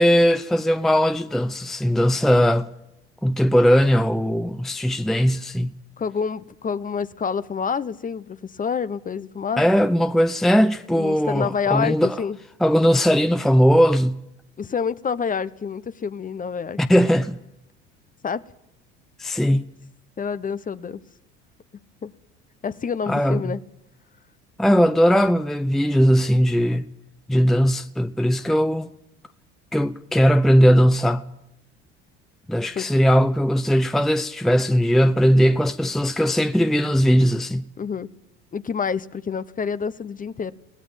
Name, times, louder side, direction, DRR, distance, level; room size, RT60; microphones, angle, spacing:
voice 1, 0.0-2.7 3.2-5.8 9.6-12.2 12.6-14.2 16.8-17.4 19.2-19.6 23.1-23.6 24.6-26.9 27.3-28.9 29.7-31.2 32.5-37.7, equal, ahead, 0.7 m, -19 dB
voice 2, 6.0-9.8 11.0-12.4 14.6-16.8 18.2-18.4 20.2-21.0 22.0-22.1 22.6-23.6 32.7-32.9 37.8-38.1 38.5-40.5, left 6 dB, 25° left, 1.0 m, -27 dB
21.5 x 18.0 x 7.4 m
hypercardioid pair, 80°, 33 cm